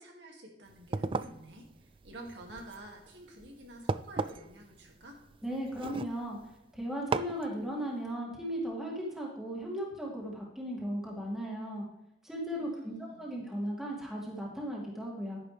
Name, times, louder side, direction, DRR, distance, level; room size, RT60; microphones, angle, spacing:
voice 1, 0.0-5.2 12.6-13.3, right 1 dB, 75° right, 1 dB, 2.4 m, -49 dB
sound 1, 0.7-6.6 7.1-7.5, right 4 dB, 30° right, 0.3 m, -37 dB
voice 2, 5.4-6.4 6.7-11.8 12.2-15.4, equal, ahead, -4 dB, 2.6 m, -36 dB
11.0 x 10.0 x 3.4 m, 0.88 s
head